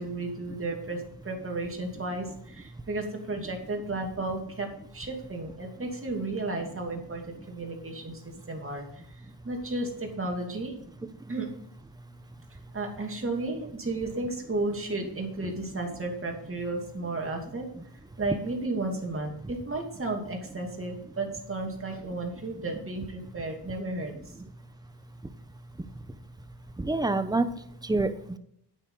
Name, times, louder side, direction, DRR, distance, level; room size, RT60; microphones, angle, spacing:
voice 1, 0.0-4.7 4.9-8.8 9.4-10.7 11.3-11.5 12.7-17.7 18.2-24.1, right 2 dB, 30° right, 2 dB, 2.6 m, -33 dB
voice 2, 25.5-26.2 26.7-28.4, right 2 dB, 10° right, 10 dB, 0.8 m, -30 dB
9.1 x 9.0 x 4.0 m, 0.74 s
cardioid pair, 90°, 41 cm